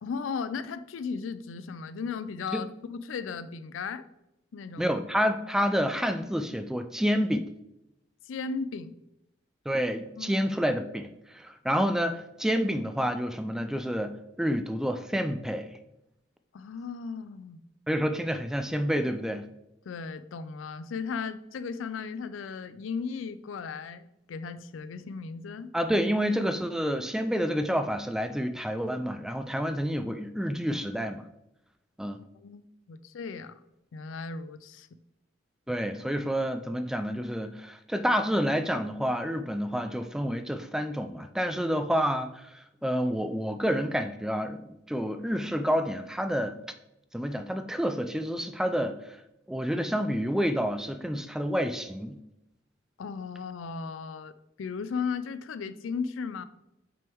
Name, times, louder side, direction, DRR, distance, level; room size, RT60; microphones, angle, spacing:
voice 1, 0.0-4.0 4.5-4.9 8.3-9.0 10.2-10.4 16.5-17.6 19.9-25.7 32.3-33.5 33.9-34.9 53.0-56.4, left 5 dB, 85° left, 13 dB, 0.4 m, -36 dB
voice 2, 4.8-7.5 9.7-15.7 17.9-19.4 25.7-31.2 32.0-32.2 35.7-46.6 47.1-49.2 49.5-52.2, equal, 5° right, 8 dB, 0.3 m, -29 dB
6.1 x 3.5 x 4.5 m, 0.86 s
head